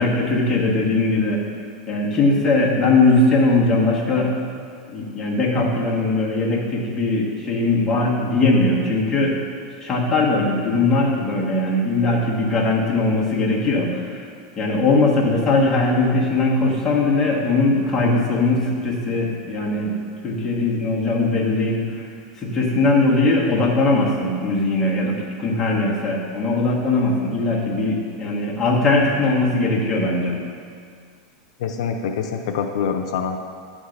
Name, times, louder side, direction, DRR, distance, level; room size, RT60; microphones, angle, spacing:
voice 1, 0.0-1.4 1.9-4.3 4.9-9.4 9.8-14.3 14.6-20.0 20.2-22.1 22.4-30.4, left 2 dB, 15° left, -5 dB, 1.3 m, -20 dB
voice 2, 31.6-33.4, left 6 dB, 75° left, 4 dB, 0.6 m, -25 dB
9.7 x 3.6 x 6.5 m, 2.2 s
supercardioid pair, 155°, 4 cm